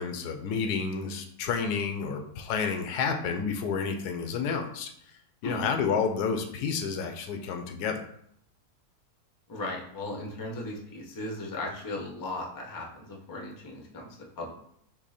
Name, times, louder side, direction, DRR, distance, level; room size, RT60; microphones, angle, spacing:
voice 1, 0.0-4.9 5.4-8.0, left 6 dB, 90° left, 4 dB, 1.2 m, -30 dB
voice 2, 9.5-14.1 14.4-14.5, left 2 dB, 25° left, -1 dB, 0.4 m, -37 dB
5.9 x 2.1 x 4.1 m, 0.69 s
omnidirectional pair, 1.6 m